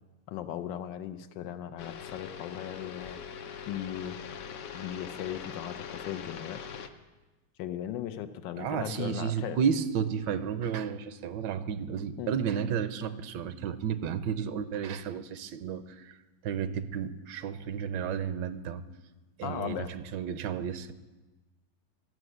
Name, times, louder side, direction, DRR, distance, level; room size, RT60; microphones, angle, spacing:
voice 1, 0.3-3.2 3.7-4.2 4.7-6.6 7.6-9.6 12.2-12.3 19.4-19.9, left 11 dB, 90° left, 12 dB, 1.4 m, -37 dB
sound 1, 1.8-6.9, left 7 dB, 65° left, 1.0 m, -42 dB
voice 2, 8.6-18.8 19.4-20.9, right 7 dB, 80° right, 13 dB, 1.3 m, -32 dB
12.5 x 6.2 x 7.8 m, 1.2 s
omnidirectional pair, 1.9 m